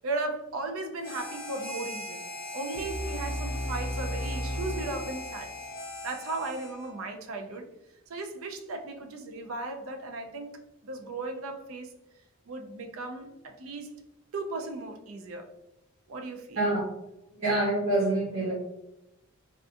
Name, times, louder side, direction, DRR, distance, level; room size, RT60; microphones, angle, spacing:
voice 1, 0.0-2.2 2.5-5.5 6.0-7.7 8.1-11.9 12.5-14.0 14.3-15.5 16.1-16.6, right 2 dB, 90° right, 5 dB, 0.5 m, -36 dB
Harmonica, 1.0-7.0, left 2 dB, 45° left, 0.8 m, -40 dB
sound 1, 2.7-5.8, equal, 65° left, 0.4 m, -35 dB
voice 2, 16.5-16.9 17.4-18.5, right 2 dB, 70° right, -9 dB, 1.2 m, -26 dB
3.5 x 2.5 x 2.4 m, 0.89 s
head